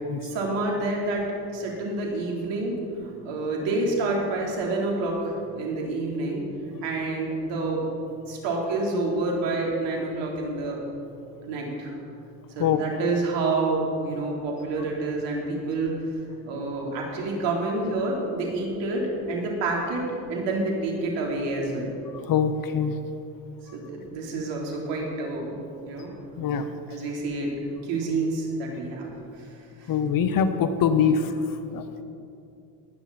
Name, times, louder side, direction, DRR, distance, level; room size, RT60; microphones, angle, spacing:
voice 1, 0.2-1.2 1.5-2.8 3.2-6.4 6.8-7.8 8.3-10.8 11.4-11.9 12.6-15.9 16.4-20.0 20.3-21.9 23.7-26.1 26.9-27.5 27.8-29.1 29.4-29.5, right 2 dB, 65° right, -2 dB, 4.0 m, -28 dB
voice 2, 22.3-22.9 26.4-26.7 29.9-31.3 31.7-32.0, left 7 dB, 45° left, 10 dB, 1.1 m, -23 dB
20.5 x 9.9 x 4.3 m, 2.6 s
hypercardioid pair, 80°, 47 cm